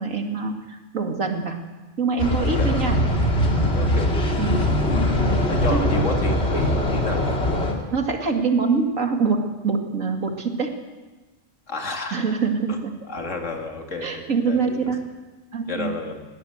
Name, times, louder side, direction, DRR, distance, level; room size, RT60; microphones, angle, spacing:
voice 1, 0.0-1.6 2.0-3.0 4.4-4.6 5.7-5.9 7.9-10.7 12.1-12.9 14.0-15.0 15.5-15.9, right 4 dB, 80° right, 4 dB, 2.5 m, -24 dB
sound 1, 2.2-7.7, left 1 dB, 50° left, 3.0 m, -21 dB
voice 2, 3.7-4.1 5.5-7.2 11.7-12.2 12.7-12.8 13.1-14.9 15.7-16.3, left 2 dB, 65° left, 3 dB, 2.8 m, -30 dB
20.5 x 17.5 x 7.9 m, 1.2 s
omnidirectional pair, 1.3 m